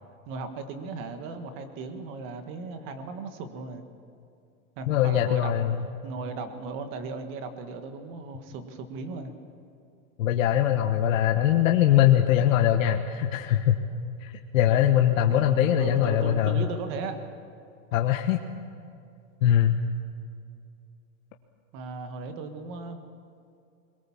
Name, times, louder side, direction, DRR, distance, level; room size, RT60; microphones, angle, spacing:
voice 1, 0.2-3.8 4.8-5.5 6.0-9.3 15.3-17.2 21.7-23.0, right 4 dB, 30° right, 7 dB, 1.6 m, -37 dB
voice 2, 4.9-5.9 10.2-13.8 14.2-16.6 17.9-18.4 19.4-19.8, left 11 dB, 70° left, 3 dB, 1.3 m, -22 dB
23.0 x 22.0 x 7.3 m, 2.5 s
supercardioid pair, 175°, 42 cm